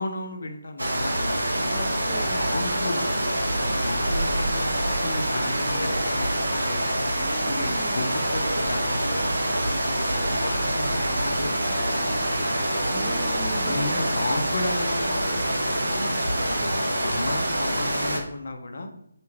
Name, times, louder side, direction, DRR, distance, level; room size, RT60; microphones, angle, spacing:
voice 1, 0.0-1.7 2.2-6.9 7.4-11.5 11.8-12.9 13.6-18.9, left 2 dB, 60° left, 5 dB, 0.5 m, -34 dB
sound 1, 0.8-18.2, right 1 dB, 80° right, 0.6 m, -25 dB
voice 2, 1.7-2.5 7.1-8.1 12.9-14.1, equal, ahead, -4 dB, 0.5 m, -38 dB
Harp, 4.6-15.8, right 2 dB, 55° right, 1.1 m, -41 dB
2.5 x 2.2 x 3.1 m, 0.74 s
figure-of-eight pair, 150°, 0 cm